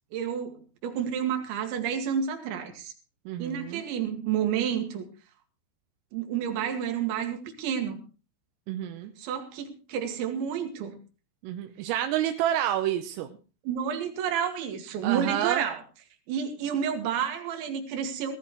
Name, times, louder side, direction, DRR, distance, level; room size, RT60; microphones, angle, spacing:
voice 1, 0.1-2.9 3.4-5.1 6.1-8.0 9.2-11.0 13.6-15.8 16.3-18.4, right 8 dB, 70° right, 5 dB, 4.3 m, -30 dB
voice 2, 3.3-3.8 8.7-9.1 11.4-13.3 15.0-15.6, right 11 dB, 85° right, 7 dB, 3.6 m, -29 dB
18.5 x 14.0 x 3.1 m, 0.34 s
omnidirectional pair, 5.8 m